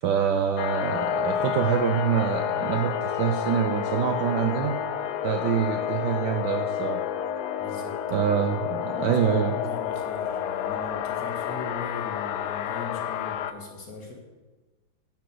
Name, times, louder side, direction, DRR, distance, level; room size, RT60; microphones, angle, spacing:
voice 1, 0.0-4.8 5.2-7.0 8.1-9.6, right 8 dB, 70° right, 5 dB, 1.0 m, -25 dB
sound 1, 0.6-13.5, left 9 dB, 85° left, 1.6 m, -30 dB
voice 2, 7.6-7.9 8.7-14.1, left 4 dB, 45° left, 0 dB, 2.0 m, -39 dB
10.0 x 6.3 x 6.6 m, 1.2 s
omnidirectional pair, 2.4 m